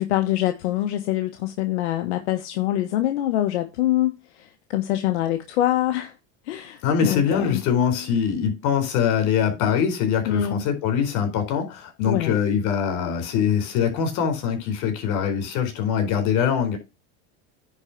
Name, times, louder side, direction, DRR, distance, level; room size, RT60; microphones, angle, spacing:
voice 1, 0.0-6.1 6.4-7.6 10.3-10.6 12.0-12.3, left 14 dB, 90° left, 1.3 m, -24 dB
voice 2, 6.8-16.8, left 7 dB, 60° left, 4.2 m, -23 dB
9.9 x 4.7 x 5.8 m
supercardioid pair, 125°, 34 cm